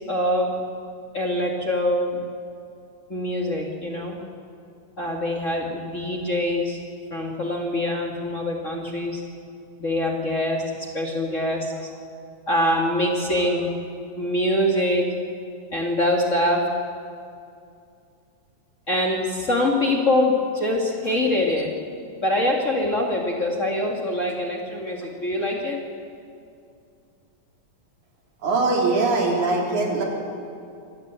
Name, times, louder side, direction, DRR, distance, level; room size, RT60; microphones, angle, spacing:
voice 1, 0.1-0.6 1.1-2.2 3.1-4.2 5.0-6.8 7.1-9.2 9.8-12.0 12.5-13.7 14.2-15.1 15.7-16.6 18.9-21.7 22.2-25.8, left 1 dB, 30° left, 0 dB, 1.9 m, -24 dB
voice 2, 28.4-30.0, right 3 dB, 80° right, 0 dB, 4.9 m, -21 dB
25.0 x 18.5 x 8.1 m, 2.5 s
omnidirectional pair, 3.4 m